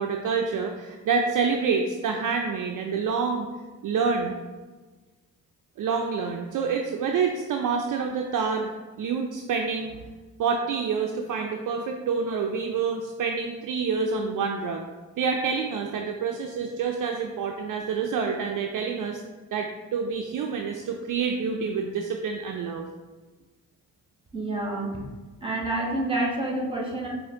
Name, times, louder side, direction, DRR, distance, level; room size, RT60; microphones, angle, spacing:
voice 1, 0.0-3.5 3.8-4.4 5.8-10.0 10.4-14.8 15.2-19.2 19.5-22.8, right 5 dB, 55° right, 3 dB, 0.5 m, -27 dB
voice 2, 24.3-25.0 25.4-27.1, right 2 dB, 15° right, -1 dB, 1.3 m, -28 dB
4.3 x 2.6 x 3.7 m, 1.3 s
supercardioid pair, 45°, 40 cm